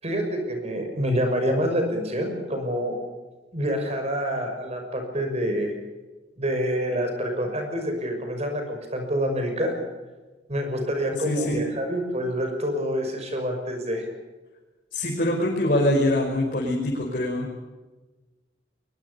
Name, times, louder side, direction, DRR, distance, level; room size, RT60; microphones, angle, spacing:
voice 1, 0.0-2.9 3.5-5.7 6.4-9.7 10.5-14.1, equal, 40° right, 5 dB, 6.0 m, -27 dB
voice 2, 11.2-11.6 14.9-17.6, left 1 dB, 50° left, -2 dB, 5.3 m, -24 dB
23.5 x 22.5 x 7.0 m, 1.2 s
head